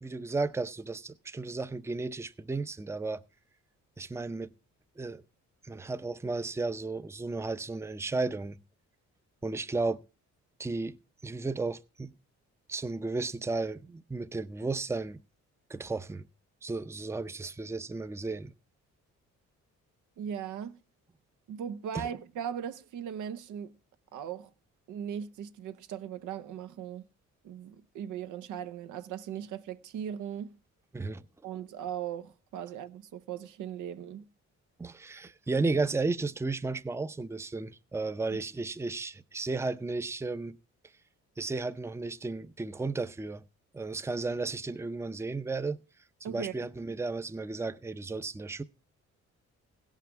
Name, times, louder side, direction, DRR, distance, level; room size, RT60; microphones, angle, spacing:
voice 1, 0.0-3.2 4.0-4.5 5.0-5.2 5.6-8.6 9.4-10.0 10.6-11.0 11.2-12.1 12.7-15.2 15.7-16.3 16.6-18.5 21.9-22.1 30.9-31.3 34.8-40.6 41.4-43.4 43.7-45.8 46.3-48.6, right 3 dB, 10° right, 0.5 m, -34 dB
voice 2, 20.2-20.8 21.5-23.7 24.1-24.5 24.9-27.0 27.4-30.5 31.4-34.2 46.2-46.7, right 9 dB, 85° right, 0.9 m, -38 dB
16.5 x 5.8 x 5.9 m
cardioid pair, 95°, 30 cm